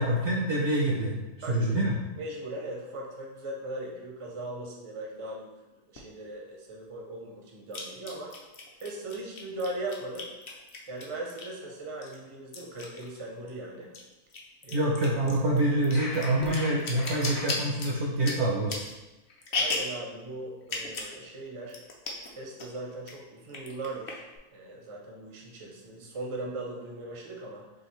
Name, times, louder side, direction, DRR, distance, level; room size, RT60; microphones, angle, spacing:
voice 1, 0.0-2.0 14.7-18.8, right 1 dB, 60° right, -2 dB, 0.8 m, -26 dB
voice 2, 1.4-1.8 2.1-8.3 8.8-10.3 10.9-13.9 14.6-14.9 19.5-21.8 22.4-24.2 24.5-27.6, right 2 dB, 30° right, -1 dB, 0.5 m, -39 dB
sound 1, 6.0-6.1 7.7-11.6 12.0-13.6 13.8-20.0 20.6-21.2 21.4-21.5 21.7-22.3 22.6-23.1 23.5-24.4, left 3 dB, 50° left, 0.7 m, -36 dB
sound 2, 15.9-17.5, left 1 dB, 75° left, 1.8 m, -39 dB
6.3 x 2.5 x 3.1 m, 1.0 s
omnidirectional pair, 1.6 m